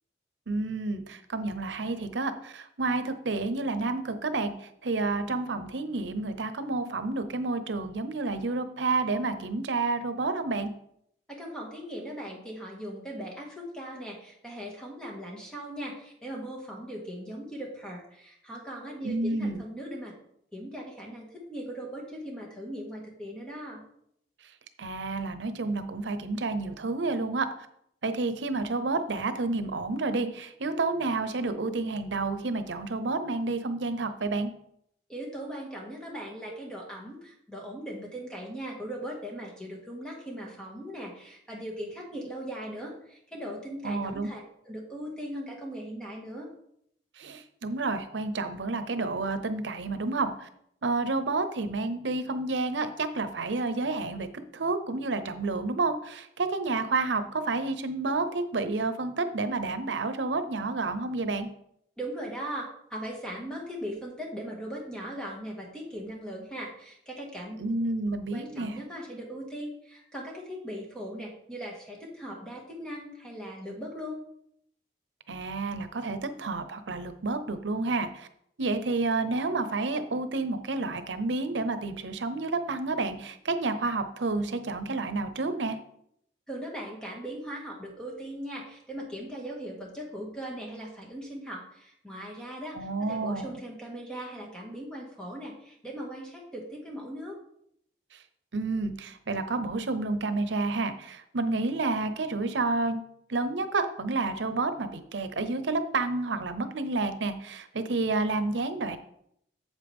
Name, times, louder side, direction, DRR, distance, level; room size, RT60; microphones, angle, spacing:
voice 1, 0.5-10.7 19.0-19.6 24.8-27.5 28.0-34.5 43.8-44.3 47.2-50.5 50.8-54.3 54.5-61.5 67.6-68.7 75.3-78.3 78.6-85.8 92.7-93.6 98.1-98.2 98.5-103.0 103.3-109.0, right 3 dB, 90° right, 10 dB, 0.7 m, -30 dB
voice 2, 11.3-20.1 20.5-23.8 35.1-44.4 44.7-46.5 62.0-67.6 68.3-74.2 86.5-97.4, equal, 5° left, -2 dB, 1.9 m, -39 dB
8.3 x 7.3 x 3.5 m, 0.72 s
head